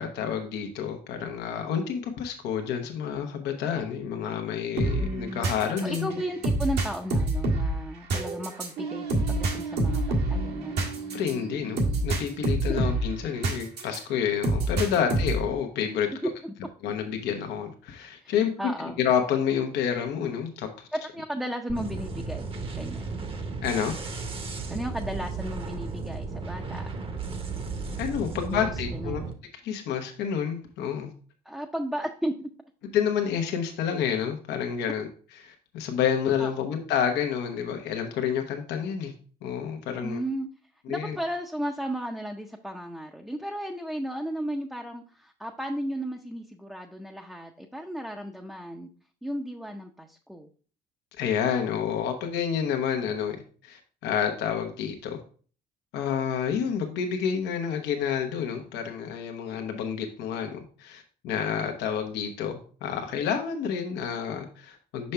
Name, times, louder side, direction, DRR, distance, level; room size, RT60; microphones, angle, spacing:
voice 1, 0.0-6.2 11.1-16.1 16.8-18.5 19.0-20.9 23.6-23.9 28.0-29.2 29.6-31.1 32.9-35.1 35.4-39.1 39.4-40.2 40.9-41.2 51.2-53.4 53.6-55.2 55.9-65.1, left 8 dB, 85° left, 4 dB, 0.9 m, -29 dB
sound 1, 4.8-14.0 14.4-15.5, right 2 dB, 80° right, 1.6 m, -27 dB
voice 2, 5.8-10.8 12.7-12.8 16.2-16.5 18.2-19.0 20.9-22.5 22.8-23.0 24.7-26.9 28.5-29.3 31.5-32.3 36.4-36.5 40.0-40.5 40.9-48.9 49.2-50.5, equal, 5° right, 2 dB, 0.6 m, -34 dB
sound 2, 21.7-29.3, right 4 dB, 35° right, 0.9 m, -34 dB
5.6 x 5.3 x 3.3 m, 0.41 s
cardioid pair, 110°, 17 cm